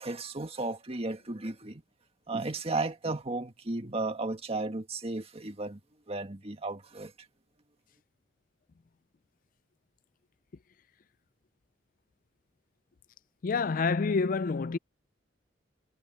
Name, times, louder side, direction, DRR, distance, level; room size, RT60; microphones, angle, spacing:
voice 1, 0.0-1.8 2.3-5.8 6.1-7.1, right 2 dB, 35° right, 1.8 m, -34 dB
voice 2, 13.4-14.8, left 4 dB, 45° left, 0.4 m, -27 dB
head